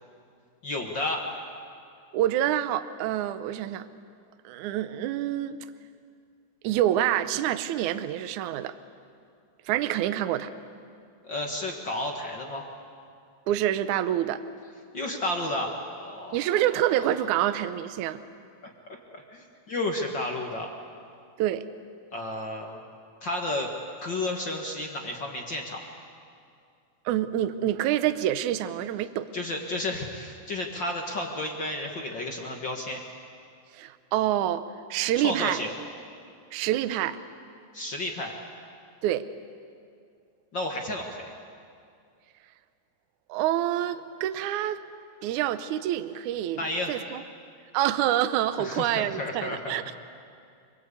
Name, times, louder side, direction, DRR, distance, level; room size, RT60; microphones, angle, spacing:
voice 1, 0.6-1.2 11.2-12.6 14.9-16.4 18.6-20.7 22.1-22.8 23.2-23.7 24.0-25.8 29.3-33.0 35.2-35.7 37.7-38.3 40.5-41.3 46.6-47.0 48.6-50.0, left 1 dB, 55° left, 1 dB, 1.2 m, -32 dB
voice 2, 2.1-3.9 4.4-5.6 6.6-8.7 9.7-10.5 13.5-14.4 16.3-18.2 21.4-21.6 27.0-29.3 33.7-34.6 34.9-35.6 36.5-37.2 39.0-39.3 43.3-44.8 45.2-47.2 47.7-50.0, right 12 dB, 90° right, 11 dB, 1.7 m, -27 dB
27.5 x 22.0 x 8.4 m, 2.4 s
omnidirectional pair, 4.7 m